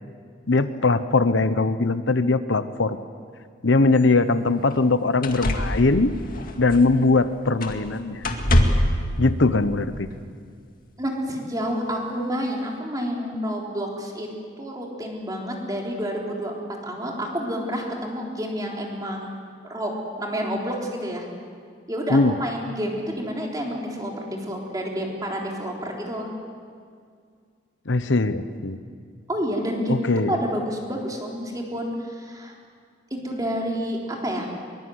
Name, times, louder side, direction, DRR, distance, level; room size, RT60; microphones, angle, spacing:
voice 1, 0.5-3.0 3.6-6.1 6.6-8.2 9.2-10.1 22.1-22.3 27.9-28.8 29.9-30.4, left 3 dB, 75° left, 12 dB, 0.9 m, -21 dB
sound 1, 4.0-4.1 4.7-4.8 5.2-7.2 7.6-7.9 8.2-9.0 10.1-10.2, left 1 dB, 45° left, 2.1 m, -24 dB
voice 2, 11.0-14.3 14.6-19.3 19.7-19.9 20.2-21.3 21.9-26.3 29.3-32.6 33.1-34.5, equal, 20° right, -1 dB, 3.7 m, -29 dB
23.0 x 22.5 x 8.0 m, 2.1 s
head